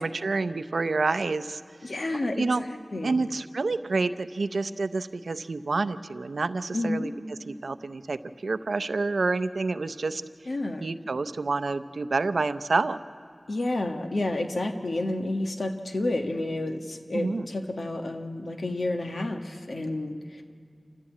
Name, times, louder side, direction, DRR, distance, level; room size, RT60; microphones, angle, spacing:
voice 1, 0.0-1.6 2.1-2.6 3.0-7.1 7.5-10.2 10.8-13.0 17.1-17.5, right 3 dB, 90° right, 12 dB, 0.6 m, -28 dB
voice 2, 1.8-3.2 6.7-7.1 10.5-10.9 13.5-20.5, left 2 dB, 70° left, 5 dB, 1.4 m, -30 dB
28.0 x 14.5 x 8.5 m, 2.4 s
wide cardioid pair, 55°, 0 cm